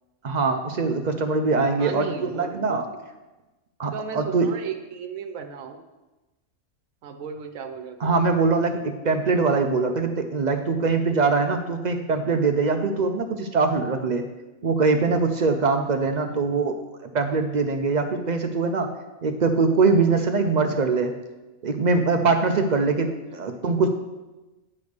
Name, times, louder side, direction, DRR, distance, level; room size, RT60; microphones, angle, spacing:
voice 1, 0.2-2.9 3.8-4.5 8.0-14.2 14.6-16.8 17.1-18.9 19.2-21.1 21.6-23.9, right 4 dB, 65° right, 6 dB, 0.4 m, -22 dB
voice 2, 1.8-2.7 3.9-5.8 7.0-8.2 16.1-16.6 23.5-23.6, right 7 dB, 85° right, 5 dB, 1.1 m, -35 dB
9.5 x 3.4 x 6.5 m, 1.1 s
omnidirectional pair, 1.4 m